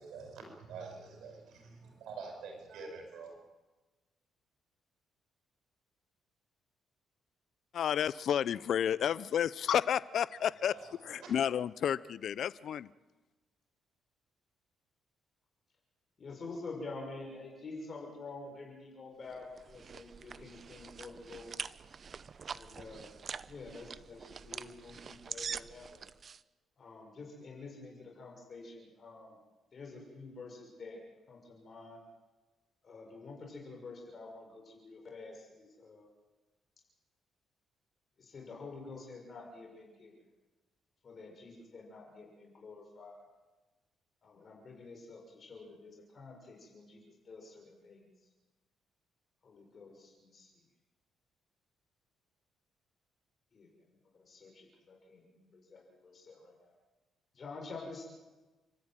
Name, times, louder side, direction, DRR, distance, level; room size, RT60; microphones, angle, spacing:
voice 1, 0.0-0.4 0.7-1.3 2.0-3.4 10.7-11.3, right 4 dB, 80° right, 2 dB, 7.6 m, -46 dB
voice 2, 7.7-10.8 11.0-12.9, left 9 dB, 65° left, 19 dB, 0.7 m, -31 dB
voice 3, 16.2-21.6 22.5-23.1 23.5-26.0 26.8-29.4 29.7-31.0 31.3-32.0 32.8-36.1 38.2-40.1 41.0-43.2 44.2-48.1 49.4-50.5 53.5-56.7 57.3-58.0, left 3 dB, 45° left, 0 dB, 6.3 m, -48 dB
sound 1, 19.3-26.4, right 6 dB, 45° right, 0.8 m, -45 dB
29.5 x 13.5 x 9.2 m, 1.2 s
cardioid pair, 90°, 0 cm